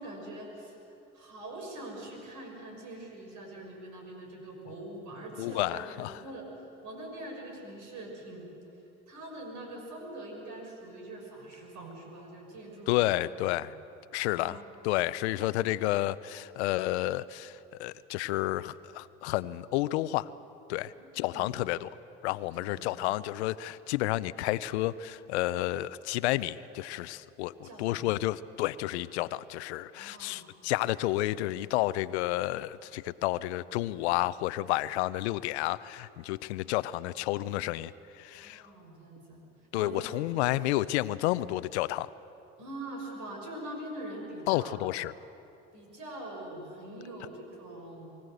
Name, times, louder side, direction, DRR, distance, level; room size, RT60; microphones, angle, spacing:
voice 1, 0.0-6.5 6.8-8.5 9.1-13.1 13.6-13.7 14.3-14.6 21.0-21.5 22.6-22.9 27.6-28.1 29.9-30.5 38.3-39.5 39.7-40.1 40.3-40.6 42.6-44.8 45.7-48.1, right 1 dB, 65° right, 1 dB, 5.9 m, -43 dB
voice 2, 5.4-6.2 12.9-13.8 14.1-20.3 20.7-21.9 22.2-38.6 39.7-42.1 44.5-45.1, left 16 dB, 90° left, 18 dB, 0.6 m, -31 dB
23.5 x 16.0 x 7.9 m, 2.8 s
hypercardioid pair, 65°, 32 cm